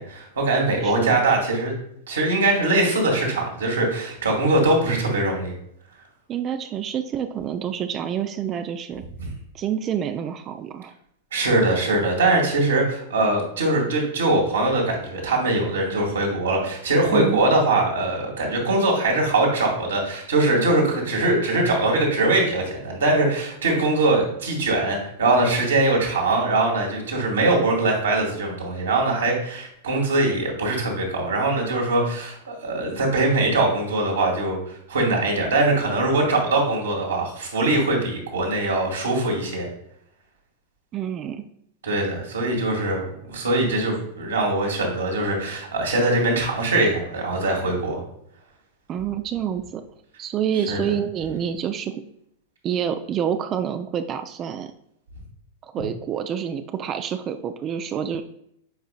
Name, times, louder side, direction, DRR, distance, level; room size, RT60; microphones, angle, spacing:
voice 1, 0.0-1.8 2.1-5.5 9.2-9.3 11.3-34.6 34.9-39.7 41.8-48.0 50.7-50.8, right 2 dB, 70° right, -1 dB, 2.1 m, -22 dB
voice 2, 0.8-1.3 6.3-9.0 9.5-10.9 17.1-17.4 40.9-41.4 48.9-49.8 50.2-52.0 52.6-54.7 55.6-58.2, right 9 dB, 30° right, 8 dB, 0.4 m, -27 dB
7.9 x 5.0 x 2.4 m, 0.74 s
figure-of-eight pair, 95°, 0 cm